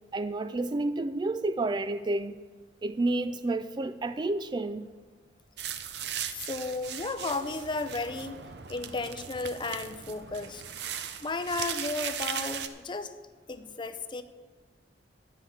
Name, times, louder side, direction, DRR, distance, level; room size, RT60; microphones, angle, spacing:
voice 1, 0.1-2.4 2.8-4.9, right 2 dB, 25° right, 12 dB, 0.3 m, -30 dB
sound 1, 5.6-12.7, right 8 dB, 65° right, 0.7 m, -38 dB
voice 2, 6.3-8.4 8.7-10.6 11.2-13.1 13.5-14.2, left 3 dB, 25° left, 10 dB, 0.6 m, -34 dB
11.0 x 5.7 x 8.4 m, 1.4 s
head